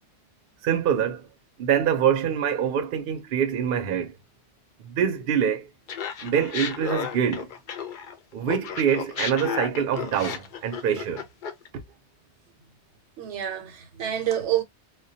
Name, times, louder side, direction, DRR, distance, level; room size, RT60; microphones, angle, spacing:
voice 1, 0.6-1.3 1.6-4.2 4.8-5.7 6.2-7.5 8.3-11.2, right 8 dB, 60° right, 0.7 m, -25 dB
Laughter, 5.9-8.2 8.5-11.7, left 7 dB, 60° left, 0.6 m, -33 dB
voice 2, 13.2-14.6, right 11 dB, 85° right, 0.9 m, -27 dB
2.2 x 2.1 x 2.6 m
omnidirectional pair, 1.2 m